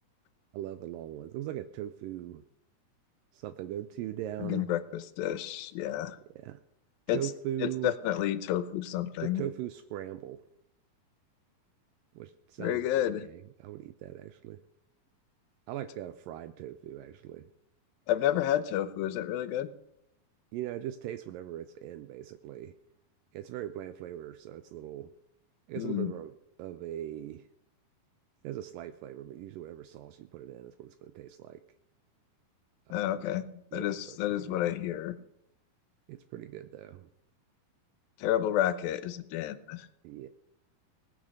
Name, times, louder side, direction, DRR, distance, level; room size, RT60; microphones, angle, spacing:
voice 1, 0.5-2.4 3.3-4.7 6.4-6.6 7.1-8.0 9.2-10.4 12.1-12.9 13.2-14.6 15.7-17.5 20.5-22.8 23.3-25.1 25.7-27.5 28.4-31.7 32.9-33.3 33.7-34.8 36.1-37.1 40.0-40.3, right 12 dB, 80° right, 11 dB, 2.2 m, -40 dB
voice 2, 4.4-6.2 7.1-7.2 7.8-9.4 12.6-13.3 18.1-19.7 25.8-26.1 32.9-33.5 33.7-35.2 38.2-39.9, left 12 dB, 90° left, 14 dB, 2.6 m, -30 dB
19.0 x 8.9 x 6.5 m, 0.78 s
omnidirectional pair, 4.0 m